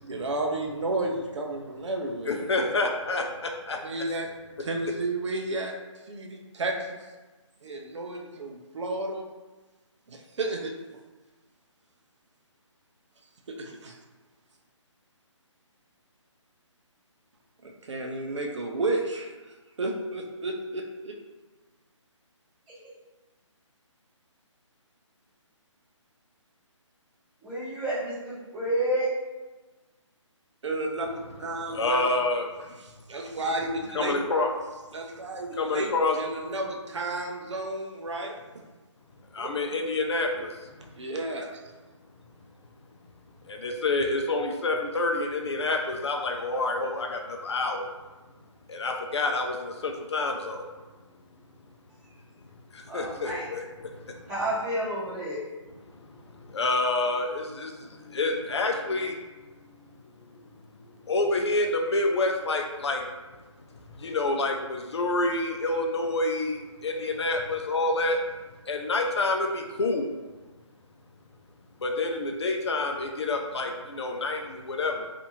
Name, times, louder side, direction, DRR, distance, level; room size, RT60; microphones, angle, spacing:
voice 1, 0.1-2.7 3.8-4.3 4.6-5.7 6.1-7.0 7.6-9.2 10.1-10.7 13.5-14.0 17.6-19.3 19.8-21.1 30.6-32.2 33.1-34.2 34.9-35.9 36.2-38.3 39.4-39.5 41.0-41.6, right 2 dB, 65° right, 1 dB, 0.5 m, -32 dB
voice 2, 2.3-3.8 31.5-32.7 33.9-34.5 35.6-36.2 39.3-40.9 43.4-47.9 48.7-50.7 52.7-54.3 55.9-59.9 60.2-60.5 60.8-63.1 63.7-68.2 68.7-70.1 71.8-75.1, left 2 dB, 60° left, 2 dB, 0.4 m, -28 dB
voice 3, 27.4-29.1 52.9-53.5 54.3-55.4, right 1 dB, 15° right, -12 dB, 1.1 m, -30 dB
2.6 x 2.5 x 2.8 m, 1.2 s
hypercardioid pair, 160°, 16 cm